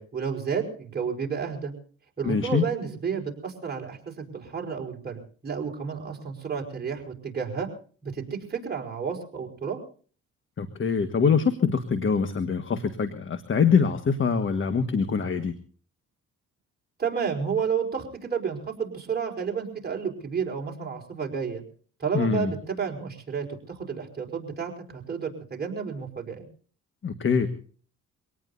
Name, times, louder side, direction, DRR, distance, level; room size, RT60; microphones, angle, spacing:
voice 1, 0.0-1.7 2.2-7.7 8.0-9.8 17.0-21.6 22.0-26.4, right 6 dB, 30° right, 1 dB, 4.8 m, -31 dB
voice 2, 2.2-2.6 10.6-15.5 22.1-22.5 27.0-27.5, left 6 dB, 40° left, 10 dB, 1.6 m, -24 dB
24.5 x 18.5 x 2.7 m, 0.42 s
cardioid pair, 90°, 30 cm